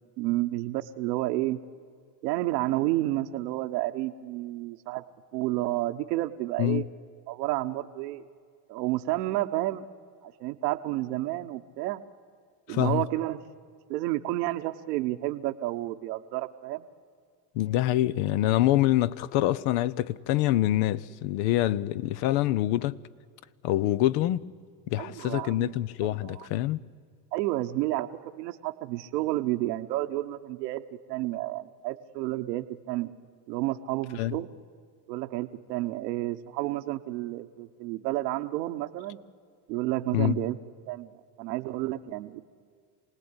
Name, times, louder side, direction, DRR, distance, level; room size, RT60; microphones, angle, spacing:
voice 1, 0.2-1.6 2.2-5.0 5.3-6.8 7.3-8.2 8.7-9.8 10.2-12.0 12.7-13.4 13.9-16.9 25.0-25.8 26.0-26.5 27.3-30.8 31.1-33.1 33.5-34.5 35.1-39.2 39.7-40.6 40.9-41.1 41.4-42.4, right 16 dB, 85° right, 1.2 m, -30 dB
voice 2, 12.7-13.0 17.5-23.0 23.6-24.5 24.9-26.8 34.2-34.4 40.1-40.4, left 14 dB, 70° left, 1.0 m, -25 dB
27.5 x 19.0 x 9.8 m
supercardioid pair, 95°, 47 cm